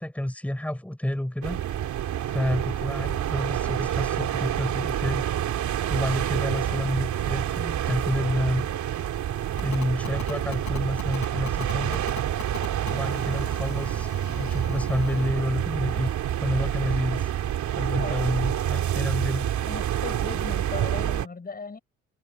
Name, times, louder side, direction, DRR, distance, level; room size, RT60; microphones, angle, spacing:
voice 1, 0.0-1.6 2.3-5.3 5.9-8.7 9.6-12.0 12.9-16.1 16.4-17.3 17.7-19.5, left 1 dB, 5° left, 5.3 m, -29 dB
sound 1, 1.4-21.3, right 11 dB, 70° right, 2.9 m, -28 dB
Telephone, 9.6-15.3, left 11 dB, 70° left, 5.5 m, -40 dB
voice 2, 19.7-21.8, left 4 dB, 30° left, 6.4 m, -37 dB
cardioid pair, 90°, 30 cm